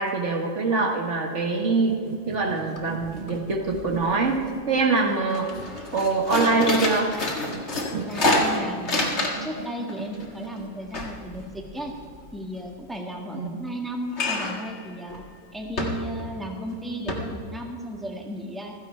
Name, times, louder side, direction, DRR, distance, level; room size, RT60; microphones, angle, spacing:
voice 1, 0.0-4.4 4.7-5.5 5.9-7.1 13.3-13.5, right 3 dB, 65° right, 1 dB, 1.8 m, -24 dB
sound 1, 1.7-6.2 7.5-10.7, right 5 dB, 40° right, 0.7 m, -38 dB
sound 2, 2.4-2.5 2.8-3.3 3.6-4.4 4.8-5.0 5.3-9.6 9.9-12.3 14.1-14.7 15.1-15.3 15.8-16.3 16.7-16.8 17.1-17.2, left 2 dB, 55° left, 2.1 m, -27 dB
voice 2, 7.9-9.2 9.4-11.9 12.3-15.2 15.5-18.7, equal, ahead, 1 dB, 1.6 m, -34 dB
15.5 x 14.5 x 4.5 m, 2.2 s
omnidirectional pair, 1.4 m